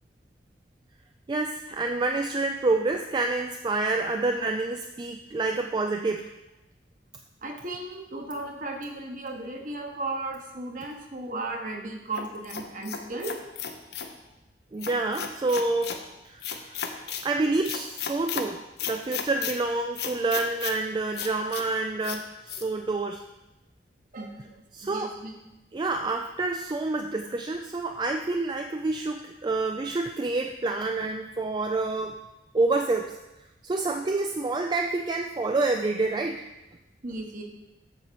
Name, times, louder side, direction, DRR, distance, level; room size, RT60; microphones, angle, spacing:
voice 1, 1.3-6.3 14.7-16.0 16.2-16.6 17.2-23.2 24.7-25.1 25.7-32.2 32.5-33.1 33.6-36.4, right 3 dB, 25° right, 4 dB, 0.3 m, -28 dB
voice 2, 7.4-13.4 24.1-25.4 37.0-37.4, right 2 dB, 50° right, 2 dB, 1.1 m, -35 dB
sound 1, 12.2-14.1 14.8-16.0 16.4-17.3 17.6-18.5 18.8-19.5 20.0-20.8 21.1-21.6 22.0-22.2 22.5-22.6, left 7 dB, 65° left, 0.7 m, -34 dB
8.0 x 4.2 x 6.8 m, 0.97 s
head